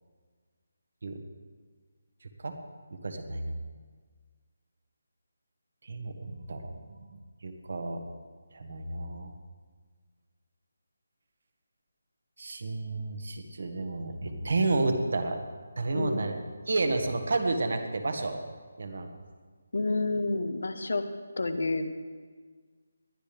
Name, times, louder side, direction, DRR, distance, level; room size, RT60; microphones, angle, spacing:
voice 1, 3.0-3.6 5.8-6.7 7.4-8.0 8.5-9.3 12.4-15.4 15.8-16.3 16.7-18.4 18.8-19.1, right 2 dB, 55° right, 6 dB, 1.5 m, -31 dB
voice 2, 15.9-16.3 19.7-21.0 21.4-22.0, left 2 dB, 60° left, 9 dB, 1.0 m, -29 dB
20.0 x 11.5 x 3.4 m, 1.5 s
figure-of-eight pair, 150°, 0 cm